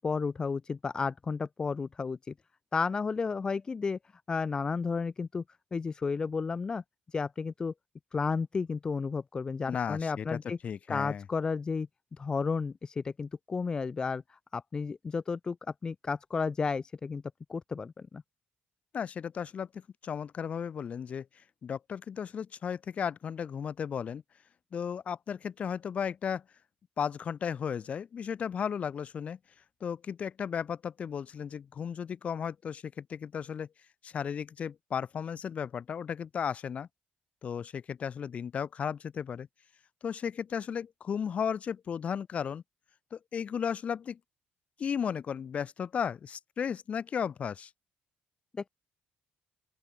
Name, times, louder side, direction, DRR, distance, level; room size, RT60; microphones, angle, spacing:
voice 1, 0.0-2.3 2.7-4.0 4.3-5.4 5.7-6.8 7.1-7.7 8.1-10.6 10.9-15.6 15.8-17.2 17.5-18.2, left 5 dB, 20° left, 0.4 m, -32 dB
voice 2, 9.7-11.2 18.9-21.3 21.6-24.2 24.7-26.4 27.0-29.4 29.8-33.7 34.0-36.9 37.4-39.5 40.0-42.6 43.1-44.2 44.8-47.7, left 7 dB, 40° left, 2.8 m, -35 dB
open air
cardioid pair, 165°, 4 cm